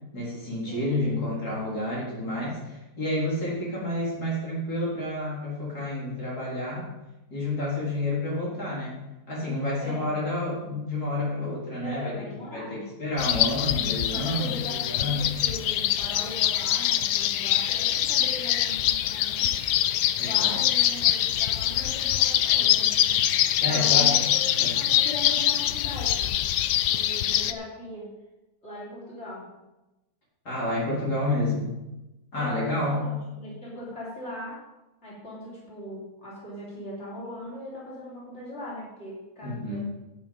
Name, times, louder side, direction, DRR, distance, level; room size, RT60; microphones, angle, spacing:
voice 1, 0.1-6.9 7.3-15.3 20.2-20.6 23.6-24.3 24.6-24.8 30.4-31.7 32.3-33.1 39.4-39.8, left 1 dB, 70° left, -6 dB, 4.5 m, -29 dB
voice 2, 0.7-1.3 9.8-10.1 11.8-12.9 14.1-19.5 20.2-23.0 23.6-24.2 24.5-26.3 26.9-28.1 28.6-29.5 32.4-34.6 35.0-39.8, left 1 dB, 40° left, -7 dB, 4.5 m, -40 dB
sound 1, 13.2-27.5, left 12 dB, 90° left, 1.2 m, -24 dB
11.5 x 9.2 x 5.4 m, 1.0 s
omnidirectional pair, 1.7 m